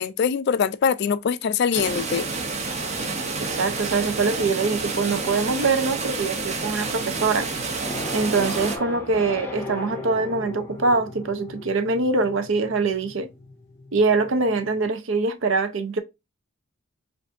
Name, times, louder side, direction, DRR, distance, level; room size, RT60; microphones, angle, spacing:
voice 1, 0.0-2.3, left 6 dB, 55° left, 0.3 m, -23 dB
sound 1, 1.7-8.8, right 3 dB, 35° right, 0.7 m, -29 dB
voice 2, 3.6-7.5 8.1-13.3 13.9-16.0, right 3 dB, 70° right, 0.6 m, -23 dB
sound 2, 7.8-14.8, left 2 dB, 10° left, 0.7 m, -37 dB
4.8 x 2.6 x 2.4 m
head